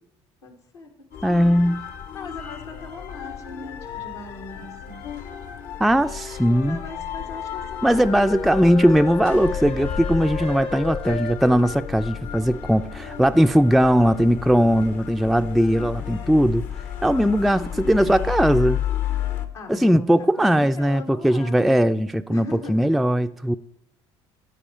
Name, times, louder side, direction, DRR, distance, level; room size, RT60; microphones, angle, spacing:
voice 1, 0.4-0.9 2.1-5.1 6.5-7.9 8.2-9.0 13.0-13.5 17.6-18.2 19.5-21.8 22.3-22.9, left 2 dB, 85° left, 1.7 m, -40 dB
sound 1, 1.1-19.5, left 9 dB, 65° left, 0.9 m, -32 dB
voice 2, 1.2-1.8 5.8-6.8 7.8-16.7 17.0-18.8 19.7-23.5, equal, ahead, 0.3 m, -19 dB
sound 2, 5.0-5.3 8.2-11.7, left 5 dB, 45° left, 0.6 m, -32 dB
14.0 x 4.8 x 4.3 m
hypercardioid pair, 60°, 14 cm